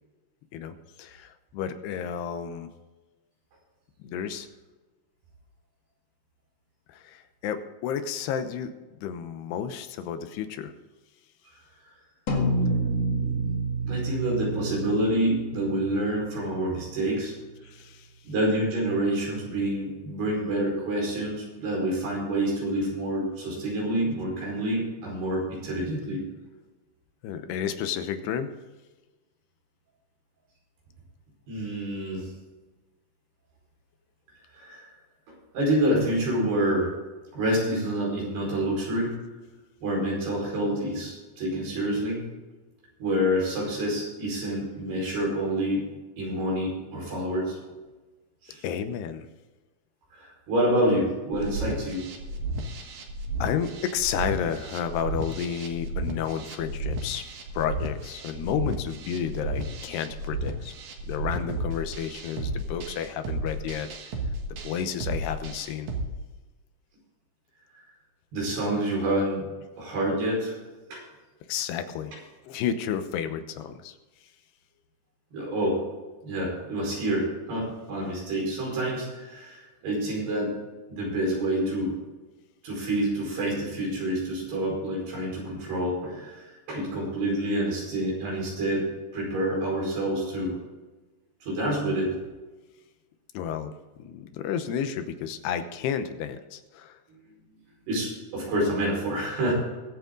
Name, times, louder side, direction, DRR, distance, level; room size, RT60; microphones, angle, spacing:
voice 1, 0.5-2.7 4.0-4.5 6.9-8.7 9.0-10.7 17.6-18.1 27.2-28.5 48.6-49.3 53.4-60.7 61.1-64.1 64.6-65.9 71.5-72.2 72.4-74.0 93.3-93.7 94.0-97.0, left 8 dB, 85° left, 9 dB, 3.1 m, -31 dB
sound 1, 12.3-16.9, right 2 dB, 45° left, 2.8 m, -29 dB
voice 2, 13.8-17.3 18.3-26.2 31.5-32.3 34.5-34.9 35.5-36.9 37.3-39.2 39.8-42.2 43.0-45.9 46.2-47.6 48.4-48.7 50.1-52.0 68.3-69.5 69.8-70.5 70.9-71.0 75.3-75.8 76.2-80.6 80.9-81.9 82.6-88.9 89.1-90.6 91.4-92.2 97.1-97.2 97.9-99.5, right 1 dB, 80° right, -3 dB, 6.9 m, -27 dB
sound 2, 51.3-66.1, right 2 dB, 55° right, 2.5 m, -33 dB
22.5 x 8.1 x 3.9 m, 1.2 s
omnidirectional pair, 4.6 m